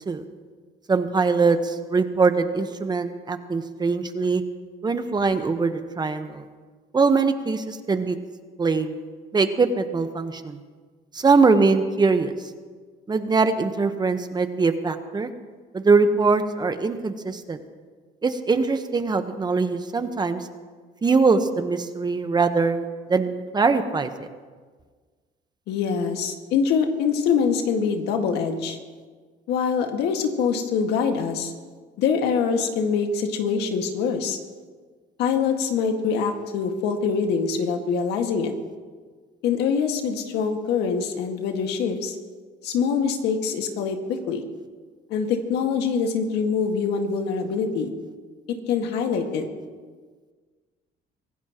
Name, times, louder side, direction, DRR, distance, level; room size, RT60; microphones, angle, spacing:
voice 1, 0.9-4.4 4.8-6.4 6.9-8.2 8.6-9.0 9.3-10.6 11.1-12.3 13.1-15.3 15.7-17.6 18.2-20.4 21.0-24.3, right 4 dB, 25° right, 8 dB, 1.2 m, -22 dB
voice 2, 25.7-28.8 29.5-31.5 32.0-34.4 35.2-38.5 39.4-42.2 42.6-44.4 45.1-47.9 48.7-49.5, left 6 dB, 85° left, 4 dB, 1.9 m, -24 dB
24.5 x 17.0 x 3.0 m, 1.5 s
cardioid pair, 110°, 17 cm